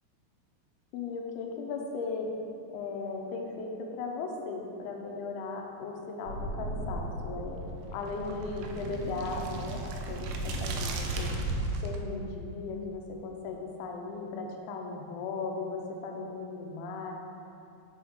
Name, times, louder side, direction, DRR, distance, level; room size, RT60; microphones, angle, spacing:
voice 1, 0.9-2.3 2.7-7.6 7.9-11.3 11.8-17.1, left 4 dB, 80° left, 1 dB, 2.4 m, -37 dB
sound 1, 6.3-12.0, right 2 dB, 80° right, 2.4 m, -35 dB
6.2 x 4.7 x 3.5 m, 2.7 s
omnidirectional pair, 4.6 m